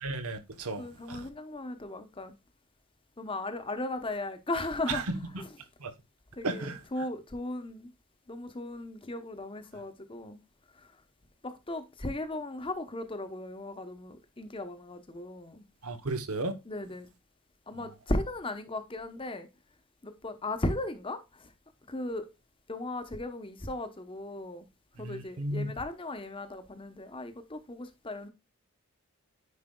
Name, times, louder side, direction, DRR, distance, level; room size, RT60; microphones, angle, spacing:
voice 1, 0.0-1.3 4.9-5.2 5.8-5.9 6.4-6.8 15.8-16.5 25.0-25.7, right 2 dB, 80° right, 1.0 m, -34 dB
voice 2, 0.7-2.4 3.2-5.0 5.4-5.6 6.4-7.9 8.3-10.4 10.7-10.9 11.4-15.6 16.7-17.1 17.7-19.5 20.0-21.5 21.9-22.3 22.7-24.7 25.0-28.3, left 2 dB, 25° left, 0.8 m, -36 dB
9.7 x 4.8 x 2.2 m
head